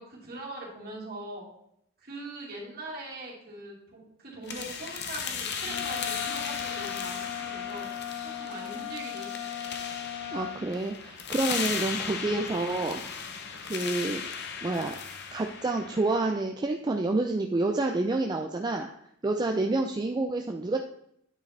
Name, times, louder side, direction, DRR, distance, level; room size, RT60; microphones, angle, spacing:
voice 1, 0.0-1.5 2.0-9.3, right 2 dB, 50° right, -5 dB, 2.7 m, -42 dB
sound 1, 4.5-16.4, left 6 dB, 55° left, 0.8 m, -36 dB
Wind instrument woodwind instrument, 5.6-10.6, left 10 dB, 80° left, 3.0 m, -37 dB
voice 2, 10.3-13.0 13.7-14.2 14.6-15.0 15.3-18.9 19.2-20.8, right 2 dB, 20° right, 3 dB, 0.4 m, -28 dB
9.4 x 4.8 x 3.3 m, 0.73 s
head